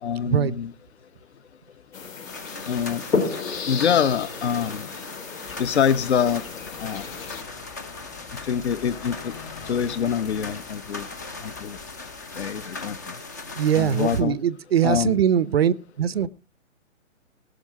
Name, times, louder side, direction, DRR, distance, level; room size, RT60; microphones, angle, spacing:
voice 1, 0.0-0.7 2.7-3.0 3.7-4.9 5.6-6.4 6.8-7.1 8.3-9.3 9.6-11.1 11.4-11.8 12.3-13.1 13.7-14.4 14.8-15.2, left 8 dB, 55° left, 17 dB, 1.0 m, -25 dB
sound 1, 1.9-7.4, left 5 dB, 75° left, 3.2 m, -32 dB
sound 2, 2.3-14.2, left 3 dB, 15° left, 0.5 m, -39 dB
sound 3, 5.4-12.7, left 10 dB, 30° left, 1.5 m, -45 dB
voice 2, 13.6-16.3, right 9 dB, 50° right, 20 dB, 0.7 m, -21 dB
19.5 x 6.5 x 4.8 m, 0.31 s
hypercardioid pair, 160°, 39 cm